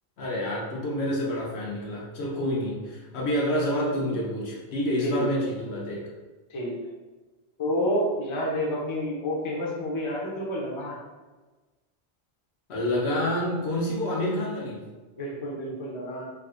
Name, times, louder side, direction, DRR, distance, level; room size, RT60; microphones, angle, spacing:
voice 1, 0.2-6.0 12.7-14.8, left 1 dB, 75° left, -4 dB, 1.0 m, -28 dB
voice 2, 5.0-5.4 6.5-6.8 7.6-11.0 15.2-16.3, equal, 35° left, -3 dB, 0.6 m, -29 dB
3.6 x 2.5 x 2.4 m, 1.2 s
omnidirectional pair, 1.1 m